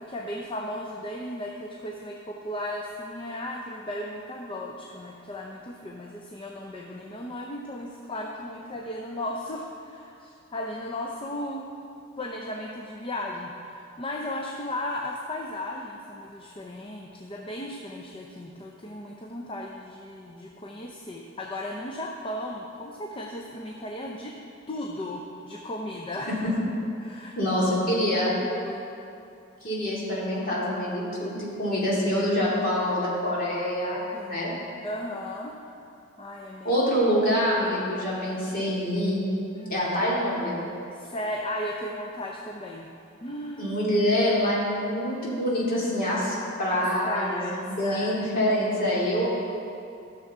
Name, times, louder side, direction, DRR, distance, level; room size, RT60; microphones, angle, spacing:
voice 1, 0.0-11.7 12.2-24.3 24.7-26.3 27.0-27.5 28.4-28.8 34.1-34.5 34.8-35.5 36.2-36.7 39.5-39.9 41.0-42.9 43.2-43.9 46.7-48.2, left 1 dB, 25° left, 0 dB, 0.6 m, -35 dB
voice 2, 27.4-28.3 29.6-34.5 36.6-39.2 39.7-40.6 43.6-49.2, equal, 45° left, -6 dB, 2.4 m, -26 dB
14.5 x 6.7 x 3.6 m, 2.6 s
head